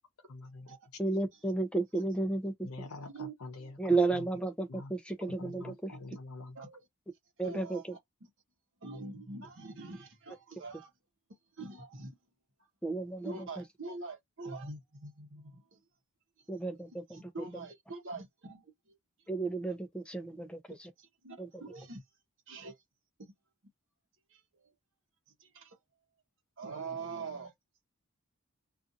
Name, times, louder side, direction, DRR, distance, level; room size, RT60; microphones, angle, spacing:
voice 1, 0.3-0.7 2.6-3.8 4.1-4.2 4.7-4.9 5.4-6.5, left 2 dB, 75° left, 0.8 m, -45 dB
voice 2, 1.0-2.7 3.8-5.9 7.4-8.0 12.8-13.6 16.5-17.5 19.3-20.9 21.4-21.6, right 3 dB, 5° left, 0.5 m, -33 dB
voice 3, 7.4-7.8 8.8-10.9 11.6-12.2 13.2-15.8 17.1-19.0 21.0-22.0 22.5-22.8 23.2-23.3 24.3-24.7 25.4-25.8 26.6-27.5, right 3 dB, 55° right, 0.9 m, -44 dB
2.6 x 2.5 x 2.6 m
head